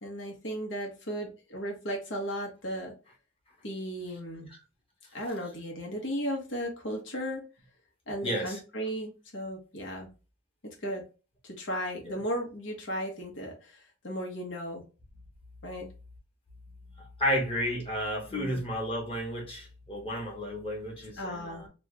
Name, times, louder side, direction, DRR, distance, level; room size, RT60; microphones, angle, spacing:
voice 1, 0.0-2.9 3.6-4.5 5.1-7.4 8.1-10.1 10.6-11.0 11.4-14.8 15.6-15.9 18.3-18.6 21.2-21.7, equal, 75° left, 1.1 m, -35 dB
voice 2, 8.2-8.6 12.1-12.2 17.0-21.7, equal, 30° left, 1.2 m, -32 dB
3.2 x 2.4 x 3.1 m
head